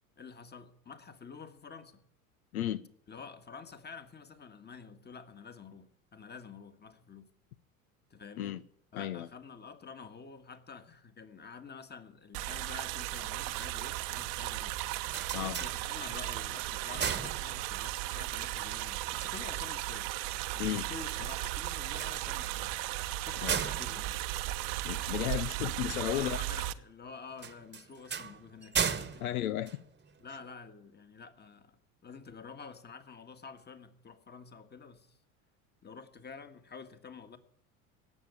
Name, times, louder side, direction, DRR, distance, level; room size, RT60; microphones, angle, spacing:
voice 1, 0.2-2.0 3.1-7.3 8.1-8.6 8.9-14.8 15.4-20.1 20.5-22.7 23.2-24.2 26.0-29.3 30.2-35.2 35.8-37.4, left 5 dB, 25° left, 1.8 m, -49 dB
voice 2, 2.5-2.9 8.4-8.6 8.9-9.3 15.3-15.6 20.6-20.9 23.4-23.6 24.8-26.4 29.2-29.8, left 12 dB, 90° left, 0.7 m, -34 dB
sound 1, 12.3-26.7, right 16 dB, 65° right, 1.0 m, -36 dB
sound 2, 14.8-16.3 16.7-18.0 21.8-25.3 27.4-30.4, right 7 dB, 25° right, 1.3 m, -37 dB
18.0 x 7.2 x 9.7 m
hypercardioid pair, 85°, 42 cm